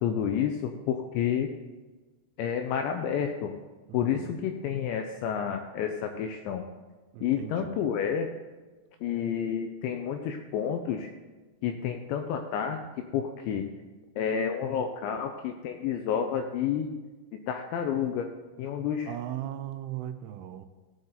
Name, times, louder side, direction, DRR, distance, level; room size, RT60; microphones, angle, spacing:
voice 1, 0.0-1.5 2.4-3.5 3.9-6.6 7.2-8.3 9.0-11.1 11.6-12.8 13.1-13.7 14.2-16.9 17.5-18.3 18.6-19.1, left 8 dB, 85° left, 5 dB, 2.6 m, -30 dB
voice 2, 3.9-4.4 7.1-7.7 19.1-20.7, right 12 dB, 85° right, 10 dB, 2.9 m, -38 dB
16.0 x 7.9 x 3.9 m, 1.3 s
omnidirectional pair, 5.8 m